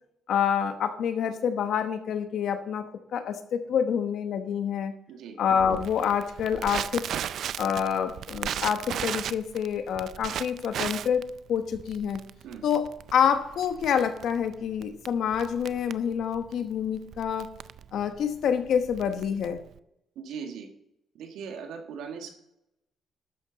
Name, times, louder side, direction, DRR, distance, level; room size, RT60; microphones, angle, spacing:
voice 1, 0.3-2.8 3.1-4.9 5.4-7.1 7.6-12.2 12.6-12.9 13.1-17.5 17.9-19.6, left 8 dB, 70° left, 8 dB, 1.2 m, -27 dB
voice 2, 5.1-5.4 12.4-12.6 20.2-20.7 21.1-22.3, right 6 dB, 85° right, 3 dB, 1.9 m, -39 dB
Crackle, 5.6-19.8, right 9 dB, 70° right, 0.4 m, -36 dB
12.5 x 8.5 x 4.1 m, 0.81 s
cardioid pair, 90°, 0 cm